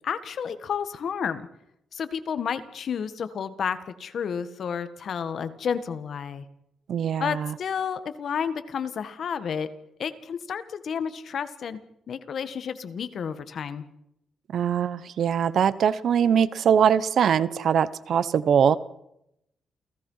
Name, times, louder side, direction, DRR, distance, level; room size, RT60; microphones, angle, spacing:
voice 1, 0.0-1.5 1.9-6.4 7.2-9.7 10.0-11.8 12.1-13.8, left 7 dB, 60° left, 11 dB, 1.7 m, -31 dB
voice 2, 6.9-7.5 14.5-18.8, right 8 dB, 65° right, 17 dB, 1.0 m, -22 dB
29.0 x 17.0 x 5.7 m, 0.80 s
cardioid pair, 115°, 0 cm